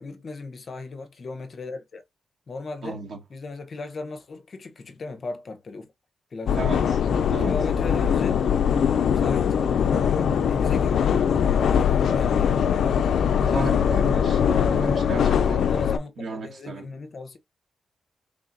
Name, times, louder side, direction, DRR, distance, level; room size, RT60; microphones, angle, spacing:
voice 1, 0.0-2.0 2.5-3.0 3.3-5.9 6.3-6.8 7.4-8.4 9.1-12.8 13.4-14.0 15.5-17.4, left 3 dB, 45° left, 0.7 m, -37 dB
voice 2, 2.8-3.2 6.6-6.8 7.3-7.5 13.4-15.7 16.2-16.8, right 2 dB, 60° right, 1.7 m, -33 dB
sound 1, 6.5-16.0, left 7 dB, 75° left, 0.3 m, -21 dB
3.8 x 3.5 x 2.6 m
wide cardioid pair, 150°, 0 cm